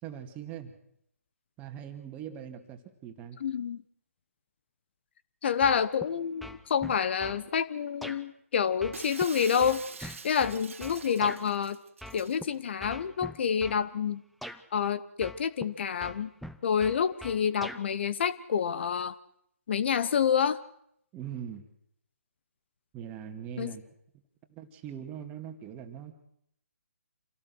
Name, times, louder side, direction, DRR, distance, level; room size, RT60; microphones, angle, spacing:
voice 1, 0.0-0.7 1.6-3.4 21.1-21.6 22.9-23.8 24.5-26.1, right 9 dB, 20° right, 6 dB, 2.2 m, -41 dB
voice 2, 3.4-3.8 5.4-11.8 12.1-14.2 14.7-16.3 16.6-19.2 19.7-20.6 23.6-23.7, left 7 dB, 50° left, 15 dB, 1.0 m, -28 dB
sound 1, 5.6-6.1 6.4-7.4 8.0-8.2 8.8-11.4 12.0-12.5 12.8-13.8 14.4-14.6 15.2-15.7 16.0-17.8, equal, ahead, 0.8 m, -42 dB
Shatter, 8.9-12.4, right 5 dB, 60° right, 2.0 m, -45 dB
27.0 x 18.0 x 6.3 m, 0.74 s
figure-of-eight pair, 140°, 8 cm